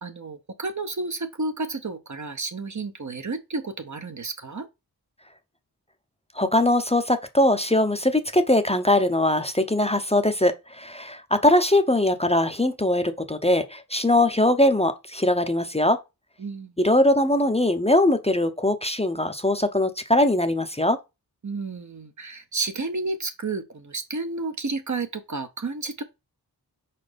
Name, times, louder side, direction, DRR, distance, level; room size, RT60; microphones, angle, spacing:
voice 1, 0.0-4.7 16.4-16.8 21.4-26.0, right 3 dB, 45° right, 0.8 m, -31 dB
voice 2, 6.4-16.0 16.8-21.0, left 1 dB, 15° left, 0.7 m, -21 dB
4.8 x 4.2 x 5.1 m
wide cardioid pair, 55°, 39 cm